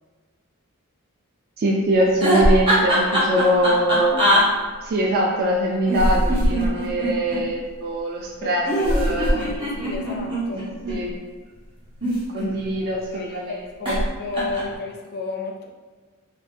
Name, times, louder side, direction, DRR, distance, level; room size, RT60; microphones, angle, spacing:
voice 1, 1.6-4.4 4.8-8.6 8.9-9.4 10.9-11.2 12.3-13.4 13.9-14.0, right 1 dB, 45° right, -1 dB, 0.3 m, -22 dB
sound 1, 2.1-4.4 5.9-7.4 8.7-11.0 11.8-12.8 13.9-14.1 14.3-14.8, equal, 25° right, 0.8 m, -21 dB
voice 2, 8.4-10.7 12.8-15.7, left 3 dB, 45° left, 1 dB, 0.4 m, -32 dB
3.5 x 2.3 x 2.5 m, 1.4 s
head